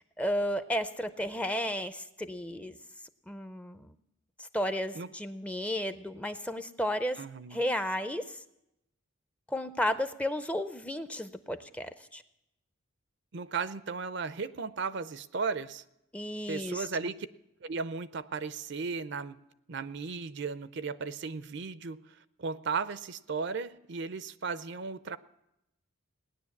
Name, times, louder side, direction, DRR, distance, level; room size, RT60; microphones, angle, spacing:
voice 1, 0.0-2.8 3.3-3.9 4.4-7.2 7.5-8.4 9.5-12.2 16.1-16.9, equal, 5° left, 10 dB, 0.5 m, -33 dB
voice 2, 7.2-7.6 13.3-15.8 16.5-17.3 17.6-19.4 19.7-22.0 22.4-25.2, right 5 dB, 55° right, 14 dB, 0.5 m, -35 dB
18.0 x 10.0 x 7.2 m, 0.85 s
head